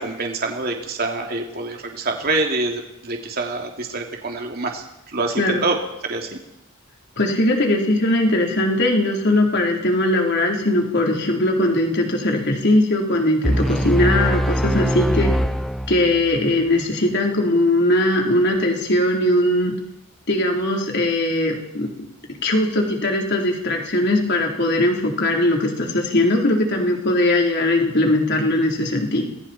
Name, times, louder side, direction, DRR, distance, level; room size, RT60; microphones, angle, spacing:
voice 1, 0.0-5.8 6.0-6.4, right 3 dB, 45° right, 1 dB, 2.9 m, -26 dB
voice 2, 7.2-15.3 15.9-19.7 20.3-21.9 22.3-29.2, left 1 dB, 50° left, 1 dB, 3.9 m, -20 dB
sound 1, 13.4-16.4, equal, ahead, 0.6 m, -22 dB
29.5 x 21.0 x 4.5 m, 0.87 s
head